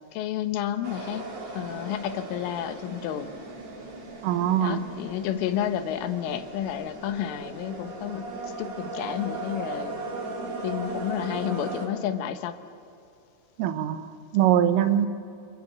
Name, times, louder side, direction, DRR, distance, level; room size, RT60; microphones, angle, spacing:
voice 1, 0.1-1.3 1.5-3.3 4.6-8.3 8.6-9.9 10.6-12.6, left 10 dB, 80° left, 9 dB, 3.7 m, -30 dB
sound 1, 0.8-11.9, right 2 dB, 40° right, 3.7 m, -37 dB
voice 2, 4.2-4.8 13.6-15.1, right 10 dB, 90° right, 9 dB, 3.9 m, -23 dB
28.5 x 27.0 x 7.4 m, 2.5 s
omnidirectional pair, 5.7 m